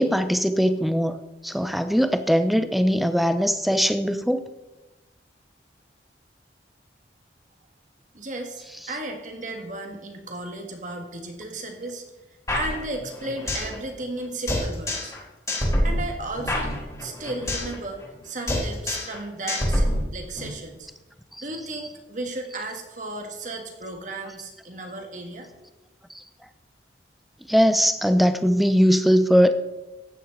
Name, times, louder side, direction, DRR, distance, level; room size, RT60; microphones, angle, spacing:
voice 1, 0.0-4.5 27.5-29.5, equal, ahead, 0.6 m, -20 dB
voice 2, 8.1-12.0 12.5-15.1 15.8-16.7 17.0-20.9 21.4-25.5, right 2 dB, 45° right, 1.9 m, -34 dB
sound 1, 12.5-13.8 14.0-14.1 14.5-15.2 15.5-17.8 18.0-18.2 18.5-19.2 19.5-20.5, left 1 dB, 20° left, 3.4 m, -26 dB
14.5 x 10.0 x 4.1 m
head